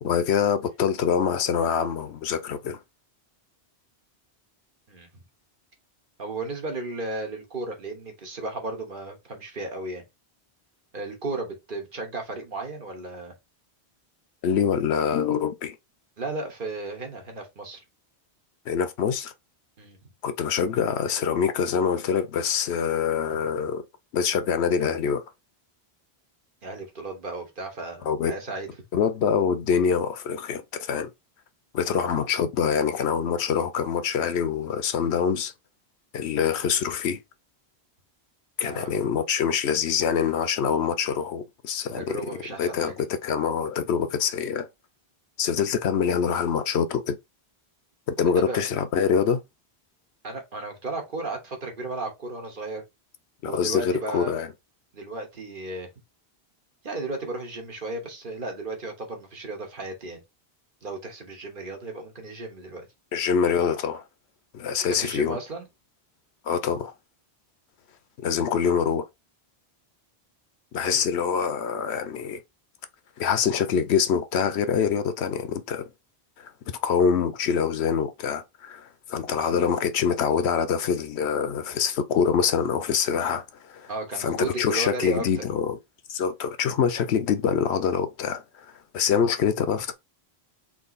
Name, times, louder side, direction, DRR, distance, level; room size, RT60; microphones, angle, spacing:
voice 1, 0.0-2.8 14.4-15.8 18.7-19.3 20.2-23.8 24.1-25.2 28.0-28.3 28.9-31.1 31.7-35.5 36.1-37.2 38.6-42.2 42.6-44.7 45.4-47.2 48.2-49.4 53.4-54.5 63.1-64.0 64.5-65.4 66.4-66.9 68.2-69.0 70.7-72.4 73.2-75.9 76.4-76.5 76.8-83.9 84.2-85.8 86.1-88.4 88.9-89.9, left 7 dB, 85° left, 1.0 m, -25 dB
voice 2, 4.9-5.2 6.2-10.0 10.9-13.3 16.2-17.8 19.8-20.0 23.3-23.5 26.6-28.7 31.8-32.0 38.6-38.9 41.9-43.0 48.2-48.6 50.2-52.8 53.4-54.3 54.9-55.9 56.8-60.2 60.8-62.8 64.8-65.7 70.8-71.1 83.9-85.5, right 2 dB, 55° right, 1.4 m, -34 dB
3.7 x 2.9 x 4.0 m
omnidirectional pair, 1.1 m